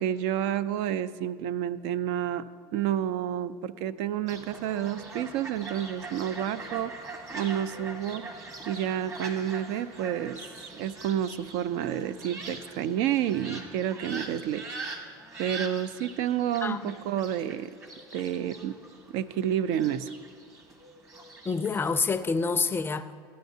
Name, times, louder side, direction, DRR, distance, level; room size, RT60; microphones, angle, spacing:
voice 1, 0.0-8.2 8.7-10.4 10.7-14.8 15.4-17.7 18.1-18.7 19.1-20.1, right 10 dB, 70° right, 14 dB, 0.4 m, -30 dB
Fowl, 4.3-21.9, right 3 dB, 25° right, 1.3 m, -43 dB
voice 2, 16.6-16.9 21.4-23.1, left 4 dB, 20° left, 11 dB, 0.4 m, -27 dB
14.0 x 9.2 x 2.7 m, 2.1 s
supercardioid pair, 100°, 12 cm